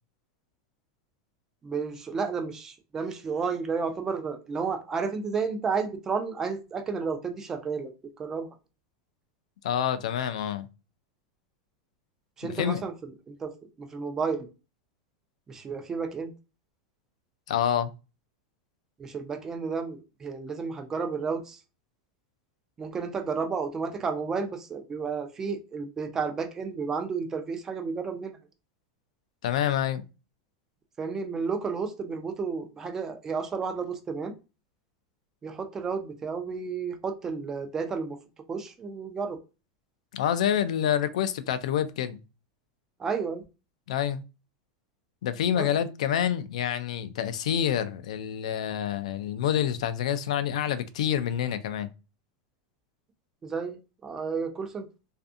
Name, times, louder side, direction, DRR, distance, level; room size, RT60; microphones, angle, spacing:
voice 1, 1.6-7.9 8.2-8.5 12.4-14.5 15.5-16.3 19.0-21.6 22.8-28.4 31.0-34.3 35.4-38.2 38.5-39.4 43.0-43.4 45.5-45.7 53.4-54.9, right 5 dB, 15° right, 0.3 m, -32 dB
voice 2, 9.6-10.7 12.4-12.8 17.5-17.9 29.4-30.0 40.1-42.2 43.9-44.2 45.2-51.9, left 10 dB, 80° left, 0.3 m, -27 dB
2.5 x 2.5 x 2.4 m
supercardioid pair, 170°, 4 cm